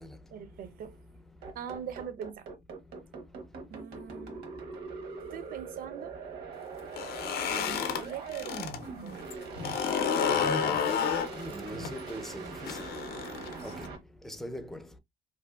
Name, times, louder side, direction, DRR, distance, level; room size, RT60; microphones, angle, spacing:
voice 1, 0.3-1.2 1.5-2.5 3.7-4.4 5.2-6.2 7.5-9.2, right 9 dB, 60° right, 0.5 m, -42 dB
sound 1, 1.4-14.0, right 5 dB, 75° right, 0.9 m, -42 dB
sound 2, 6.8-8.8 9.1-13.9, left 7 dB, 70° left, 0.5 m, -31 dB
voice 2, 10.3-10.8 11.4-12.9 13.6-13.9 14.2-14.8, left 1 dB, ahead, 0.4 m, -40 dB
2.6 x 2.5 x 2.2 m
cardioid pair, 110°, 17 cm